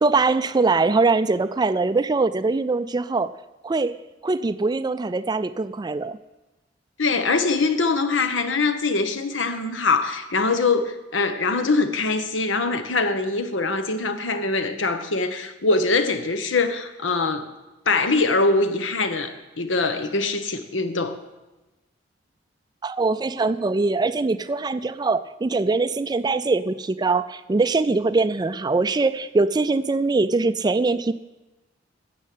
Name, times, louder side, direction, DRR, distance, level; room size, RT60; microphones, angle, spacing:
voice 1, 0.0-3.4 3.6-4.0 4.2-6.2 22.8-31.1, right 3 dB, 20° right, 14 dB, 0.4 m, -22 dB
voice 2, 7.0-17.5 17.8-21.2, left 3 dB, 80° left, 10 dB, 1.1 m, -23 dB
12.5 x 7.6 x 8.5 m, 1.1 s
head